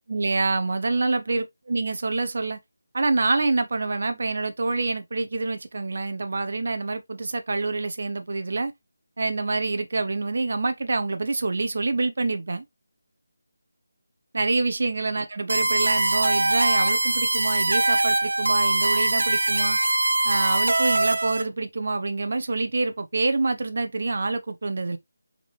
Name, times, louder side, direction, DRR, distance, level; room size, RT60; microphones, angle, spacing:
voice 1, 0.0-2.6 2.9-8.7 9.2-12.6 14.3-19.8 20.2-25.0, right 3 dB, 40° right, 0.6 m, -26 dB
sound 1, 15.5-21.4, right 2 dB, 85° right, 0.6 m, -22 dB
3.8 x 3.6 x 3.0 m
figure-of-eight pair, 180°, 0 cm